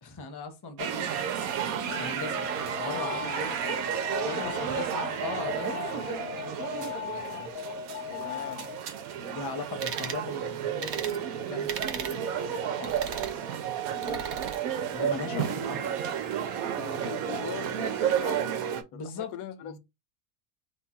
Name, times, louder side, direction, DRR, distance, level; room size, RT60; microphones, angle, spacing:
voice 1, 0.0-2.4 2.8-3.9 4.2-7.5 9.2-13.4 14.9-16.0 18.9-19.3 19.6-19.8, left 4 dB, 35° left, 0.4 m, -40 dB
sound 1, 0.8-18.8, right 8 dB, 85° right, 1.1 m, -32 dB
Alarm, 1.9-9.0, left 8 dB, 50° left, 0.8 m, -38 dB
voice 2, 4.4-4.8 6.1-6.2 8.1-8.7 9.1-9.4 13.9-14.2 15.0-15.6 16.8-19.8, left 10 dB, 90° left, 1.0 m, -41 dB
sound 2, 9.8-10.2 10.8-11.2 11.7-12.2 12.8-13.4 14.0-14.6, right 7 dB, 60° right, 0.8 m, -36 dB
2.9 x 2.3 x 4.0 m
omnidirectional pair, 1.5 m